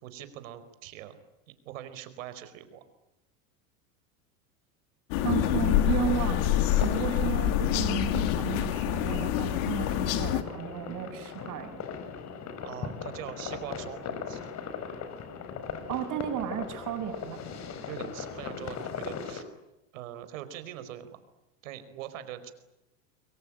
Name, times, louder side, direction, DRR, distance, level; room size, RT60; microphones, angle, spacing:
voice 1, 0.0-1.2 1.6-2.8 12.6-14.5 17.9-19.4 19.9-21.2 21.6-22.5, right 11 dB, 80° right, 11 dB, 4.8 m, -42 dB
sound 1, 5.1-10.4, left 12 dB, 65° left, 3.1 m, -26 dB
voice 2, 5.2-11.8 15.9-17.4, right 10 dB, 50° right, 6 dB, 6.9 m, -34 dB
sound 2, 6.2-19.4, left 6 dB, 45° left, 5.0 m, -39 dB
28.5 x 22.5 x 8.9 m, 0.92 s
supercardioid pair, 105°, 39 cm